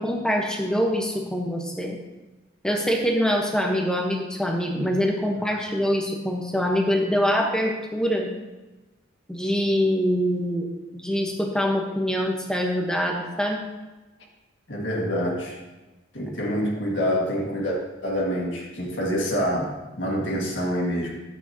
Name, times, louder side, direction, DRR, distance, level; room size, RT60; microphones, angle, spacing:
voice 1, 0.0-2.0 2.6-8.3 9.3-13.6, equal, 5° left, 1 dB, 1.0 m, -24 dB
voice 2, 14.7-15.6 16.1-21.2, equal, 60° left, -2 dB, 1.8 m, -26 dB
12.5 x 8.2 x 2.8 m, 1.1 s
head